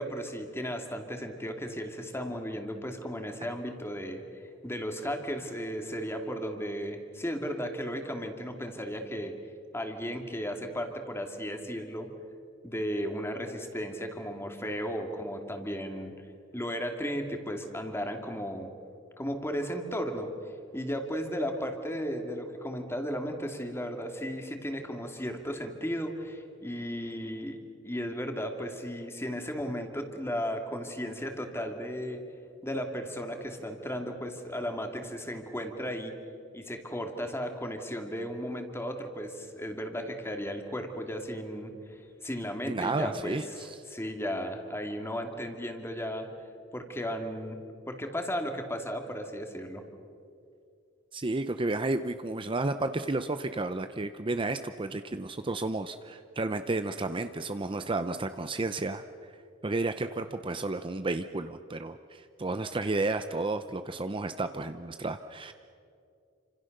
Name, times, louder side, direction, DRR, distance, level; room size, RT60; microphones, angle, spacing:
voice 1, 0.0-9.3 9.7-12.1 12.6-16.1 16.5-18.7 19.2-27.6 27.8-32.2 32.6-36.2 36.5-46.3 46.7-47.6 47.9-49.8, equal, 15° left, 5 dB, 2.5 m, -35 dB
voice 2, 42.7-43.8 51.1-59.0 59.6-65.5, right 2 dB, 25° right, 9 dB, 0.7 m, -32 dB
29.0 x 26.5 x 6.7 m, 2.5 s
head